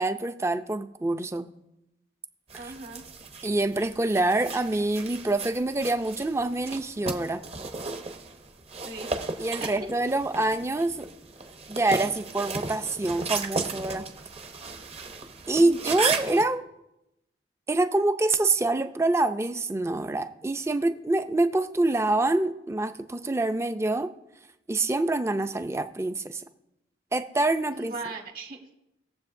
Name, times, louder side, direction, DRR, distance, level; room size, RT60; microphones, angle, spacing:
voice 1, 0.0-1.5 3.4-7.4 9.4-11.1 11.7-14.1 15.5-16.7 17.7-24.1 24.7-26.4 27.1-27.9, right 2 dB, 15° right, 10 dB, 0.4 m, -26 dB
sound 1, 2.5-16.4, right 4 dB, 35° right, 0.8 m, -35 dB
voice 2, 2.6-3.0 8.8-9.1 9.6-9.7 15.6-16.0 27.7-28.7, right 3 dB, 50° right, 3 dB, 1.6 m, -39 dB
20.0 x 7.4 x 2.6 m, 0.88 s
head